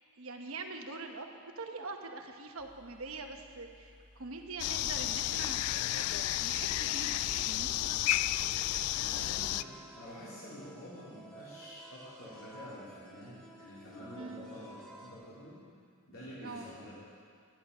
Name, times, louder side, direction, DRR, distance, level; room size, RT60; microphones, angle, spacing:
voice 1, 0.2-5.7 6.4-7.8 14.1-14.5 16.3-16.7, right 3 dB, 70° right, 4 dB, 1.1 m, -43 dB
sound 1, 2.6-10.4, left 1 dB, 40° right, 2.0 m, -58 dB
sound 2, 4.6-9.6, left 14 dB, 90° left, 0.3 m, -32 dB
voice 2, 8.9-15.6 16.1-16.9, equal, 70° left, -11 dB, 3.7 m, -48 dB
sound 3, 9.5-15.1, right 2 dB, 5° left, 1.3 m, -54 dB
14.0 x 10.5 x 5.5 m, 2.3 s
head